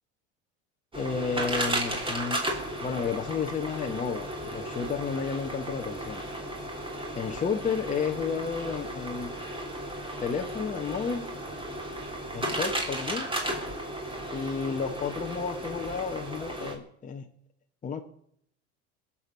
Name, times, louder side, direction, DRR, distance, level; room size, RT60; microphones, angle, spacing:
voice 1, 0.9-2.4 2.8-6.2 7.1-9.3 10.2-11.2 12.3-13.3 14.3-17.3 17.8-18.0, left 6 dB, 25° left, 3 dB, 1.2 m, -32 dB
sound 1, 0.9-16.8, right 1 dB, 15° right, 3.4 m, -34 dB
22.0 x 7.4 x 6.9 m, 0.68 s
supercardioid pair, 110°, 34 cm